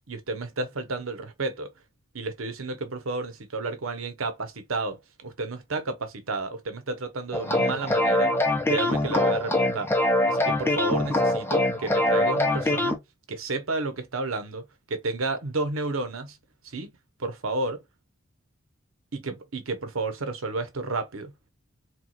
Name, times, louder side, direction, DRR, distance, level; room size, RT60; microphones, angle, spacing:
voice 1, 0.1-1.7 2.1-8.3 8.7-9.9 10.2-13.0 13.3-16.4 16.6-16.9 17.2-17.8 19.1-21.3, right 2 dB, 80° right, 1.0 m, -31 dB
sound 1, 7.3-13.0, left 1 dB, 10° left, 0.6 m, -23 dB
4.5 x 2.4 x 2.3 m
head